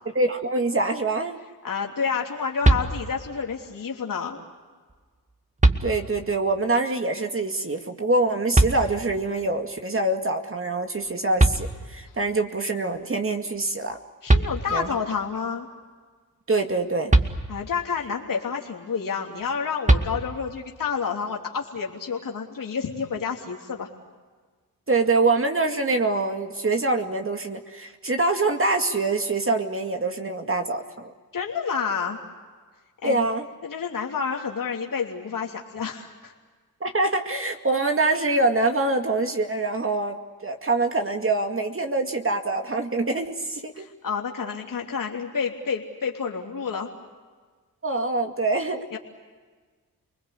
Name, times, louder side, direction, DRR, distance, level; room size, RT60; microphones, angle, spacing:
voice 1, 0.1-1.4 5.8-14.0 14.7-15.0 16.5-17.1 24.9-31.1 33.0-33.5 36.8-43.8 47.8-48.9, right 2 dB, 35° right, 4 dB, 2.3 m, -25 dB
voice 2, 1.6-4.4 14.2-15.7 17.5-23.9 31.3-32.2 33.0-33.2 33.6-36.3 43.7-46.9 48.9-49.0, left 6 dB, 65° left, 0 dB, 3.2 m, -29 dB
sound 1, 2.6-3.4 4.9-5.0 5.6-6.4 8.5-9.3 11.1-11.2 11.4-12.2 13.9-14.0 14.3-15.0 17.1-17.9 19.9-20.6, right 2 dB, 20° right, 2.2 m, -22 dB
29.5 x 21.0 x 8.3 m, 1.4 s
cardioid pair, 60°, 36 cm